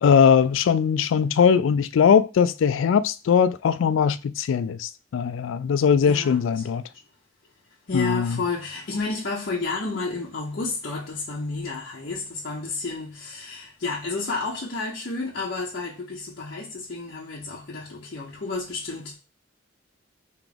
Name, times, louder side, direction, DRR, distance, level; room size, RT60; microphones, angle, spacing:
voice 1, 0.0-6.8 7.9-8.4, left 7 dB, 75° left, 0.3 m, -20 dB
voice 2, 6.0-6.7 7.9-19.2, left 3 dB, 50° left, 0.7 m, -31 dB
3.6 x 3.0 x 3.3 m
head